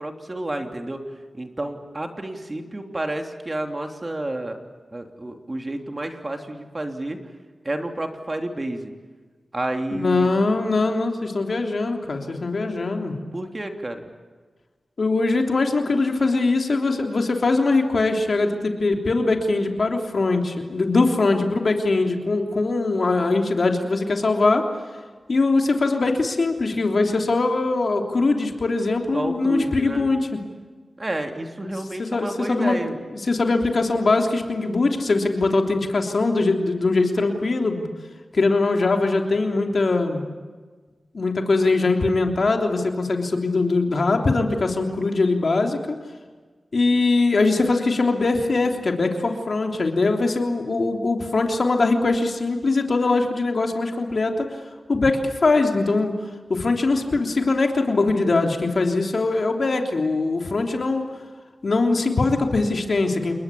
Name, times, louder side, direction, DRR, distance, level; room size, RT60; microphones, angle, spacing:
voice 1, 0.0-4.6 4.9-7.2 7.6-8.9 9.5-10.3 13.3-14.0 29.1-30.0 31.0-32.9, right 1 dB, 35° right, 4 dB, 3.2 m, -30 dB
voice 2, 9.9-13.1 15.0-24.6 25.3-30.2 31.6-31.7 32.0-32.8 33.2-37.9 38.3-40.2 41.1-45.9 46.7-54.5 54.9-56.1 56.5-61.0 61.6-63.3, left 3 dB, 65° left, 3 dB, 3.3 m, -21 dB
28.5 x 21.5 x 8.6 m, 1.4 s
cardioid pair, 55°, 0 cm